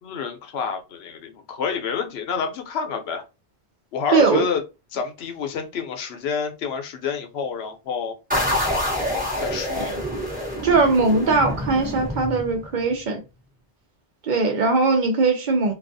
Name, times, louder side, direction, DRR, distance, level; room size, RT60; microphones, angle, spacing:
voice 1, 0.0-3.2 3.9-4.6 4.9-8.2 9.4-9.9, left 6 dB, 75° left, 0.8 m, -28 dB
voice 2, 4.1-4.4 9.8-9.9 10.6-13.2 14.2-15.7, right 3 dB, 55° right, 0.6 m, -20 dB
sound 1, 8.3-12.8, left 1 dB, 10° right, 0.9 m, -27 dB
2.3 x 2.3 x 2.5 m
omnidirectional pair, 1.1 m